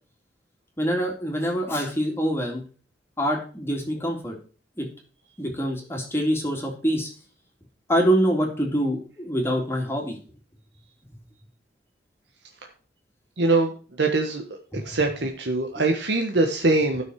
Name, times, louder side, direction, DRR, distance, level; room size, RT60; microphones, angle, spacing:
voice 1, 0.8-2.6 3.2-4.3 4.8-4.9 5.4-7.1 7.9-10.2 14.7-15.0, equal, 15° left, 0 dB, 2.4 m, -25 dB
voice 2, 13.4-13.7 14.0-14.4 14.7-17.0, right 2 dB, 85° right, 3 dB, 1.4 m, -22 dB
12.5 x 6.3 x 4.8 m, 0.37 s
head